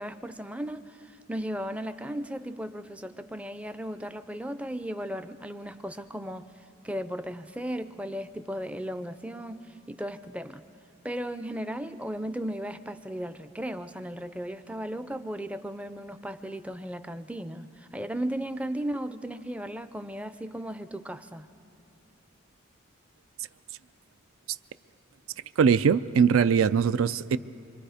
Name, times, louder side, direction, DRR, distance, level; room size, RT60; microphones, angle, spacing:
voice 1, 0.0-10.6 11.0-21.5, equal, 5° right, 0.4 m, -36 dB
voice 2, 25.6-27.4, right 6 dB, 80° right, 0.4 m, -21 dB
26.0 x 24.5 x 4.9 m
head